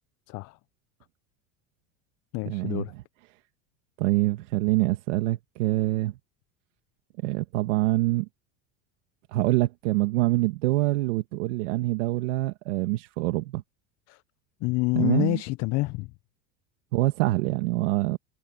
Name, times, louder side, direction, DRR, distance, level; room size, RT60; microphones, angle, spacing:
voice 1, 0.3-0.6 2.3-2.9 14.1-14.2 14.6-16.1, left 22 dB, 45° left, 0.5 m, -27 dB
voice 2, 2.5-2.9 4.0-6.2 7.2-8.3 9.3-13.6 14.9-15.4 16.9-18.2, right 19 dB, 85° right, 1.9 m, -25 dB
supercardioid pair, 130°, 36 cm